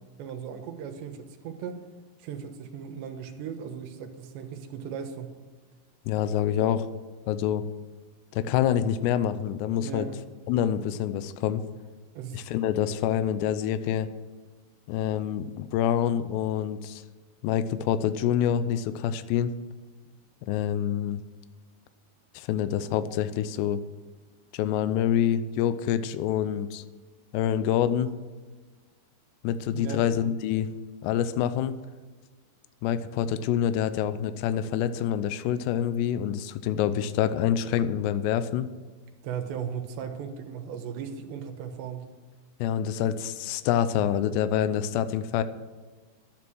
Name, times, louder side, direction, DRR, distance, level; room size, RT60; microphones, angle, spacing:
voice 1, 0.2-1.8 2.2-5.4 9.8-10.2 12.2-12.4 29.7-30.1 39.2-42.1, right 7 dB, 80° right, 6 dB, 3.4 m, -37 dB
voice 2, 6.1-6.9 7.3-7.6 8.3-10.1 10.5-11.6 12.3-14.1 14.9-17.0 17.4-19.5 20.5-21.2 22.3-23.8 24.5-26.8 27.3-28.1 29.4-30.7 31.0-31.8 32.8-38.7 42.6-45.4, left 10 dB, 80° left, 12 dB, 2.8 m, -26 dB
11.5 x 10.5 x 6.2 m, 1.3 s
omnidirectional pair, 5.0 m